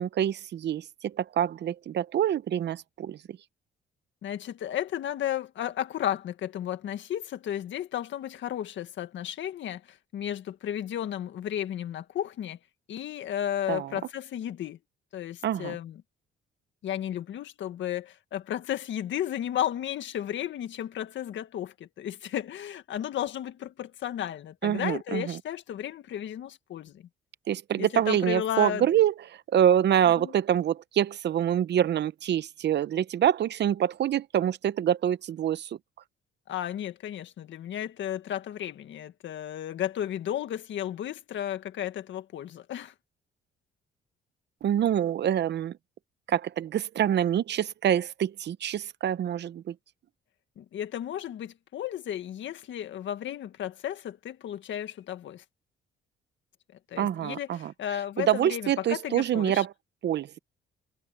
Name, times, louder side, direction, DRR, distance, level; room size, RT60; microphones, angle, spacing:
voice 1, 0.0-3.2 13.7-13.9 15.4-15.8 24.6-25.4 27.5-29.1 29.5-35.7 44.6-45.7 46.3-49.7 57.0-57.7 58.2-59.7 60.0-60.4, right 10 dB, 60° right, 0.8 m, -26 dB
voice 2, 4.2-12.6 12.9-14.8 15.1-16.0 16.8-27.1 27.8-28.9 30.2-30.3 36.5-42.9 50.6-55.4 56.9-59.7, left 11 dB, 70° left, 1.8 m, -33 dB
cardioid pair, 90°, 20 cm